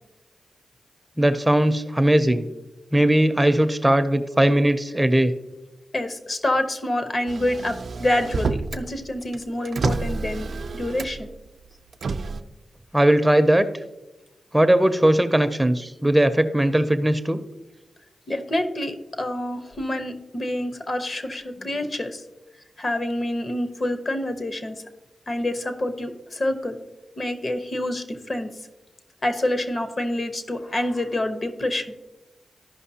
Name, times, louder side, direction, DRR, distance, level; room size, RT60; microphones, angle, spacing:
voice 1, 1.2-2.5 2.9-5.3 12.9-13.7 14.5-17.4, right 1 dB, 15° right, 10 dB, 0.6 m, -19 dB
voice 2, 5.9-10.5 10.7-11.3 18.3-22.2 22.8-24.8 25.3-26.8 27.2-28.5 29.2-31.8, left 1 dB, 50° left, 8 dB, 1.0 m, -27 dB
Motor vehicle (road), 7.3-8.9 9.2-11.3 11.9-12.4, right 4 dB, 70° right, 0.4 m, -29 dB
13.5 x 5.4 x 2.8 m, 1.0 s
cardioid pair, 45°, 0 cm